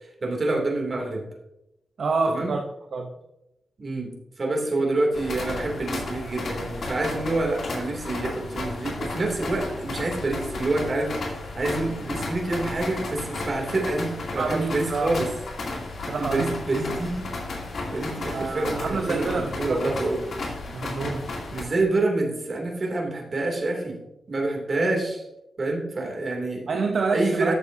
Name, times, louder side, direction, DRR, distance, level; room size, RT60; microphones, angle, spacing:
voice 1, 0.2-1.2 2.3-2.5 3.8-15.3 16.2-17.3 17.9-20.2 21.5-23.9 24.3-25.2 25.6-26.6 27.1-27.5, right 2 dB, 45° right, 0 dB, 2.6 m, -27 dB
voice 2, 2.0-2.6 2.9-3.1 14.4-15.2 16.1-16.5 18.3-20.0 20.7-21.4 26.7-27.5, right 4 dB, 60° right, 3 dB, 0.8 m, -27 dB
sound 1, 5.1-21.6, left 2 dB, 70° left, 2.7 m, -33 dB
13.0 x 6.9 x 2.7 m, 0.90 s
wide cardioid pair, 105°, 0 cm